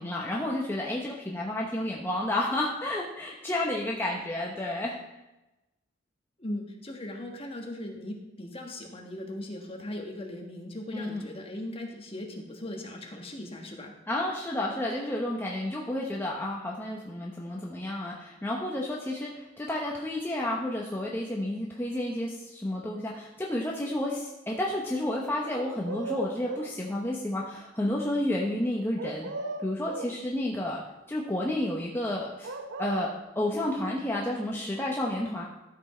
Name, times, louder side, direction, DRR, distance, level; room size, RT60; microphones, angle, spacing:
voice 1, 0.0-5.0 10.9-11.3 14.1-29.3 29.6-30.8 31.1-32.5 32.8-33.1 33.4-35.4, left 1 dB, 10° left, -2 dB, 0.9 m, -31 dB
voice 2, 6.4-13.9, left 1 dB, 30° left, 2 dB, 1.5 m, -38 dB
sound 1, 25.4-26.8 29.0-30.2 32.4-33.2, right 2 dB, 80° right, 0.8 m, -37 dB
12.5 x 5.9 x 4.4 m, 0.98 s
head